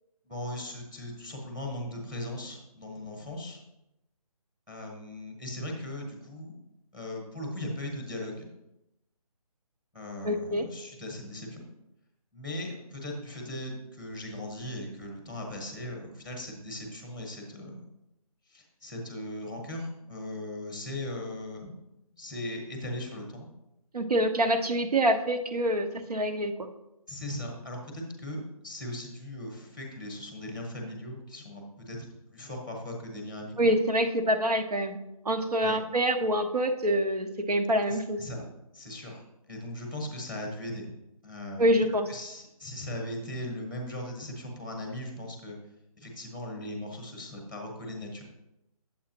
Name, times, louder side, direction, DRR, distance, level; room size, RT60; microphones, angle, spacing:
voice 1, 0.2-3.6 4.7-6.6 6.9-8.4 9.9-11.7 12.3-17.8 18.5-21.7 22.1-23.5 27.1-33.7 35.6-35.8 37.9-38.5 38.7-40.9 41.2-45.6 46.0-48.2, left 1 dB, 5° right, 1 dB, 0.9 m, -38 dB
voice 2, 10.2-10.6 23.9-26.5 33.6-35.0 35.2-38.2 41.6-42.1, equal, 90° right, 7 dB, 1.1 m, -26 dB
9.5 x 7.4 x 3.0 m, 0.89 s
hypercardioid pair, 165°, 19 cm